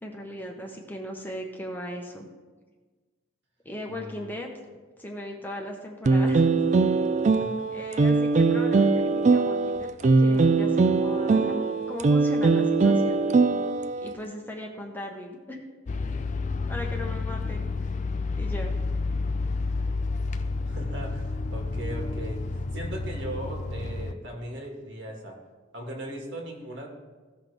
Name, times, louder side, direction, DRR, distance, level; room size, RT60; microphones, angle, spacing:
voice 1, 0.0-2.3 3.6-4.5 5.0-6.5 7.7-11.6 11.9-13.2 14.0-15.6 16.7-17.9 18.4-18.8, left 1 dB, 10° left, 1 dB, 0.9 m, -38 dB
voice 2, 3.9-4.3 7.3-7.7 20.6-25.4 25.7-26.9, right 1 dB, 65° right, 0 dB, 1.9 m, -38 dB
sound 1, 6.1-14.1, right 3 dB, 35° right, 0.3 m, -21 dB
sound 2, 15.9-24.1, left 3 dB, 40° left, 0.4 m, -30 dB
16.0 x 5.9 x 3.4 m, 1.4 s
head